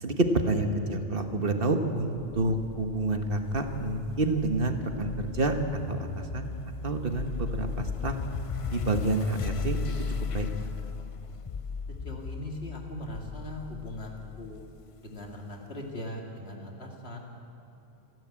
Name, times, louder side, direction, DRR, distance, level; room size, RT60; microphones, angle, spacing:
voice 1, 0.0-6.5 6.8-8.1 8.7-9.8 10.3-10.5, right 2 dB, 60° right, 6 dB, 1.5 m, -28 dB
sound 1, 2.2-15.3, left 6 dB, 40° left, 0.5 m, -37 dB
voice 2, 11.9-14.6 15.0-17.2, left 1 dB, 75° left, 1 dB, 2.8 m, -40 dB
28.0 x 11.0 x 8.8 m, 2.8 s
omnidirectional pair, 1.1 m